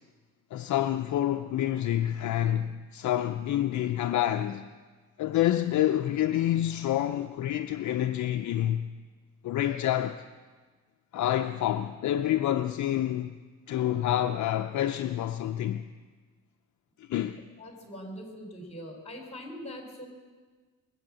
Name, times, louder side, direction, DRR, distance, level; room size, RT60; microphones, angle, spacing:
voice 1, 0.5-4.7 5.2-8.9 9.4-10.2 11.1-13.4 13.7-15.9 17.0-17.4, left 12 dB, 55° left, 0.6 m, -28 dB
voice 2, 17.6-20.1, equal, 20° left, 4.0 m, -42 dB
22.0 x 8.6 x 7.6 m
cardioid pair, 130°, 35 cm